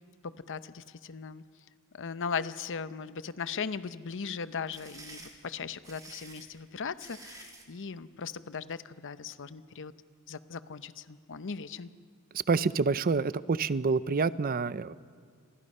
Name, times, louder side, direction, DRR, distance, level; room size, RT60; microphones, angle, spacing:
voice 1, 0.2-1.4 1.9-9.9 10.3-11.9, left 5 dB, 60° left, 13 dB, 0.7 m, -38 dB
sound 1, 4.4-7.7, right 3 dB, 15° right, 2.6 m, -49 dB
voice 2, 12.5-14.9, right 4 dB, 40° right, 16 dB, 0.5 m, -27 dB
28.0 x 23.0 x 5.5 m, 2.2 s
head